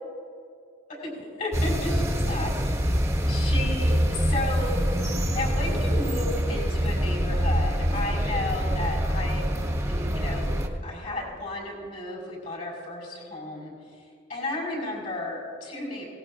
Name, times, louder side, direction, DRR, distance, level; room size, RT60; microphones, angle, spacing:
voice 1, 0.9-2.8 3.3-4.7 5.3-9.4 9.9-10.5 10.8-13.7 14.3-16.1, left 2 dB, 45° left, -3 dB, 4.8 m, -33 dB
sound 1, 1.5-10.7, equal, 15° right, 1.5 m, -25 dB
24.5 x 19.0 x 2.5 m, 2.4 s
head